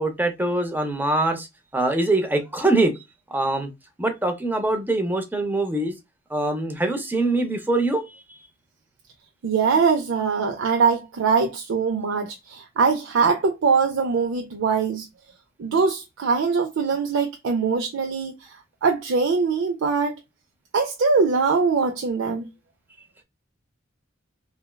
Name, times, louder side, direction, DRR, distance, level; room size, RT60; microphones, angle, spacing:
voice 1, 0.0-1.5 1.7-2.9 3.3-3.7 4.0-5.9 6.3-8.4, right 2 dB, 10° right, 0.6 m, -23 dB
voice 2, 9.4-15.1 15.6-18.6 18.8-20.2 20.7-22.5, right 5 dB, 75° right, 0.5 m, -22 dB
3.4 x 2.1 x 2.2 m
head